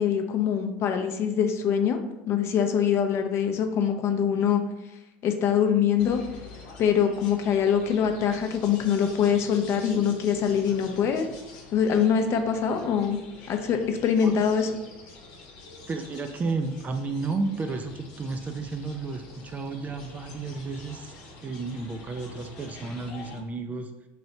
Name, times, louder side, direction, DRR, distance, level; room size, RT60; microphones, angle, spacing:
voice 1, 0.0-2.0 2.3-4.6 5.2-6.2 6.8-11.3 11.7-13.2 13.5-14.7, left 8 dB, 45° left, 6 dB, 0.5 m, -24 dB
sound 1, 6.0-23.4, left 3 dB, 70° left, 0.8 m, -46 dB
voice 2, 15.9-21.1 21.4-23.9, right 3 dB, 25° right, 6 dB, 0.3 m, -32 dB
3.1 x 2.6 x 4.2 m, 0.96 s
supercardioid pair, 120°, 6 cm